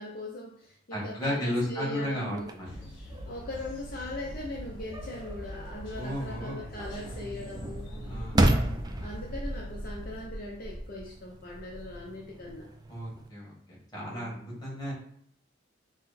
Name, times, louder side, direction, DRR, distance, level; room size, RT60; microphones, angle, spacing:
voice 1, 0.0-2.5 3.2-7.9 9.0-12.7 14.1-14.4, left 1 dB, 50° left, -2 dB, 0.7 m, -40 dB
voice 2, 0.9-2.7 5.9-6.7 8.0-8.5 12.9-14.9, left 1 dB, 20° left, -5 dB, 1.7 m, -34 dB
sound 1, 2.3-13.3, right 1 dB, 20° right, 0.4 m, -34 dB
sound 2, 2.6-10.3, left 1 dB, 65° left, 1.8 m, -44 dB
6.0 x 2.1 x 4.2 m, 0.68 s
head